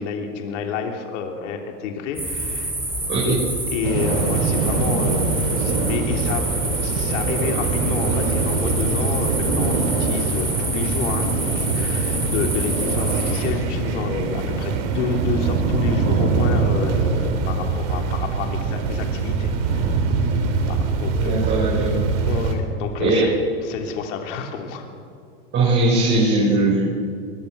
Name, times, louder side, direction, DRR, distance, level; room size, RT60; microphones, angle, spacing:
voice 1, 0.0-2.7 3.2-3.4 3.7-6.5 6.8-20.3 20.7-21.4 22.2-23.3 23.6-24.9, left 6 dB, 70° left, 3 dB, 3.3 m, -29 dB
sound 1, 2.1-13.5, right 1 dB, 5° right, 5.7 m, -27 dB
voice 2, 3.1-3.4 21.1-22.0 23.0-23.3 25.5-26.8, right 2 dB, 30° right, -6 dB, 6.7 m, -19 dB
sound 2, 3.8-22.5, right 4 dB, 65° right, 4.1 m, -23 dB
22.5 x 22.0 x 6.9 m, 2.3 s
supercardioid pair, 140°, 38 cm